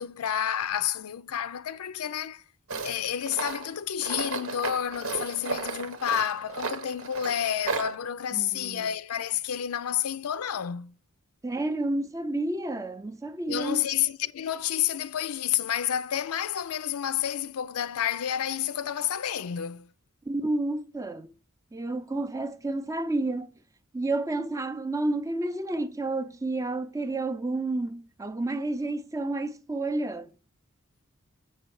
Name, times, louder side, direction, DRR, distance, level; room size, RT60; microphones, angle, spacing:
voice 1, 0.0-2.4 2.8-10.9 13.5-19.9, left 9 dB, 90° left, 0.5 m, -30 dB
Tools, 2.7-7.9, right 4 dB, 75° right, 1.0 m, -34 dB
voice 2, 8.3-8.9 11.4-13.9 20.3-21.3 21.7-23.5 23.9-30.3, right 2 dB, 15° right, 0.5 m, -30 dB
7.6 x 5.4 x 4.7 m
head